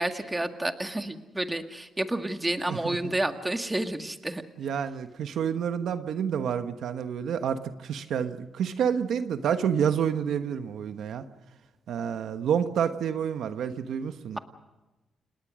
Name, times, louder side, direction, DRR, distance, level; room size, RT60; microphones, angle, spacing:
voice 1, 0.0-4.4, right 1 dB, 15° right, 6 dB, 1.9 m, -30 dB
voice 2, 2.7-3.0 4.6-11.2 11.9-14.4, right 8 dB, 80° right, 9 dB, 1.2 m, -29 dB
30.0 x 18.5 x 6.4 m, 1.1 s
cardioid pair, 95°, 0 cm